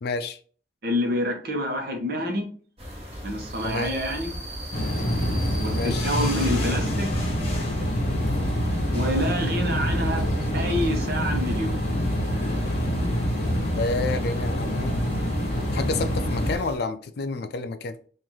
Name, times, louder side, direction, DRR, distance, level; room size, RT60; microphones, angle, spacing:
voice 1, 0.0-0.4 3.6-3.9 5.7-6.1 13.8-15.0 15.7-18.0, left 3 dB, 60° left, 0.4 m, -29 dB
voice 2, 0.8-2.5 3.2-4.3 5.5-7.1 8.9-10.3 10.5-11.8, equal, 55° right, 1.0 m, -27 dB
sound 1, 2.8-16.8, equal, 35° right, 1.2 m, -37 dB
sound 2, 4.7-16.6, equal, 35° left, 1.0 m, -26 dB
3.9 x 2.6 x 3.0 m
head